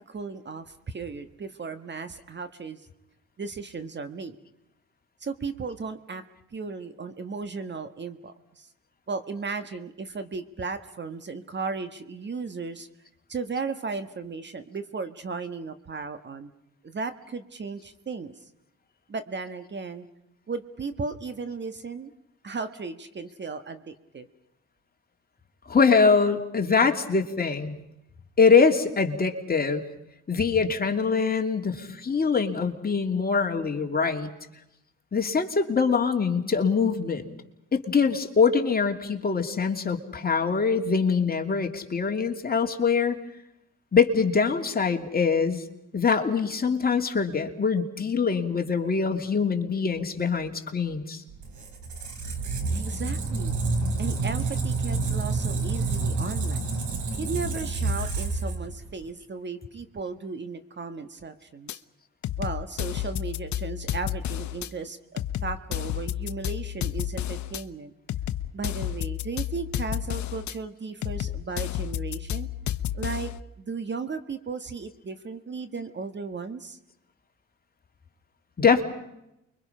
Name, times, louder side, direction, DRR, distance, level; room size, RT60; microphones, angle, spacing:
voice 1, 0.1-2.8 3.4-4.4 5.2-6.2 6.5-8.7 9.1-12.9 13.3-16.5 16.8-18.3 19.1-20.1 20.5-22.1 22.4-24.3 52.7-53.5 54.0-56.6 57.2-61.8 62.4-67.9 68.5-72.5 72.9-73.3 73.6-76.8, right 4 dB, 35° right, 10 dB, 1.6 m, -35 dB
voice 2, 25.7-27.7 28.4-29.8 30.3-34.3 35.1-37.3 37.7-43.2 43.9-45.6 45.9-51.2 78.6-78.8, left 5 dB, 30° left, 4 dB, 2.7 m, -23 dB
Squeak, 51.3-59.0, right 3 dB, 75° right, 3.9 m, -28 dB
sound 1, 61.7-61.8 62.2-64.7 65.2-67.6 68.1-70.5 71.0-73.4, left 11 dB, 70° left, 0.9 m, -31 dB
29.5 x 23.5 x 5.7 m, 0.87 s
cardioid pair, 90°, 30 cm